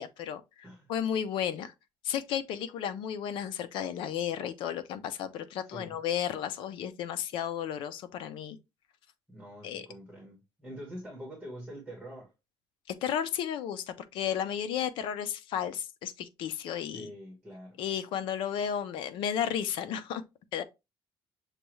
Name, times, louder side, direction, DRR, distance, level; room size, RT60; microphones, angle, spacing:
voice 1, 0.0-1.7 2.0-8.6 9.6-9.8 12.9-17.1 17.8-20.2 20.5-20.6, left 9 dB, 65° left, 0.6 m, -33 dB
voice 2, 5.7-6.0 9.3-12.3 16.9-17.8, equal, ahead, 1.3 m, -45 dB
6.5 x 2.3 x 3.0 m
cardioid pair, 175°, 9 cm